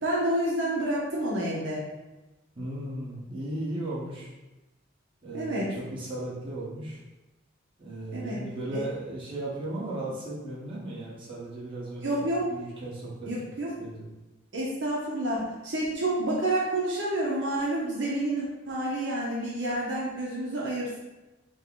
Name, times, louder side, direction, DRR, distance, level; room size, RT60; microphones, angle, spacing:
voice 1, 0.0-1.8 5.3-5.7 8.1-8.4 12.0-12.5 13.3-13.7 14.5-21.0, right 1 dB, 65° right, -6 dB, 0.9 m, -29 dB
voice 2, 2.5-4.3 5.2-7.0 7.8-13.3 13.8-14.1, right 1 dB, 25° right, -8 dB, 1.4 m, -36 dB
5.3 x 2.3 x 4.0 m, 1.1 s
head